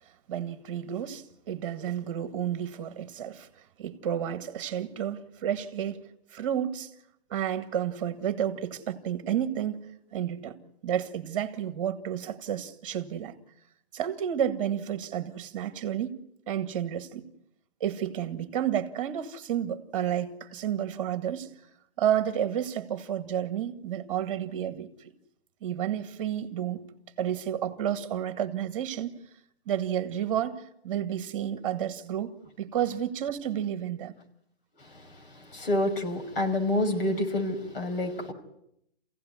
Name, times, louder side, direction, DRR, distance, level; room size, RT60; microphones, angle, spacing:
voice 1, 0.3-3.5 3.8-6.0 6.3-6.9 7.3-9.8 10.1-10.5 10.8-13.4 13.9-16.1 16.5-17.2 17.8-21.5 22.0-25.1 25.6-26.8 27.2-29.1 29.7-34.1, right 10 dB, 30° right, 2.0 m, -31 dB
voice 2, 34.8-38.3, left 1 dB, 60° left, 5.5 m, -28 dB
27.5 x 16.5 x 9.7 m
hypercardioid pair, 170°, 32 cm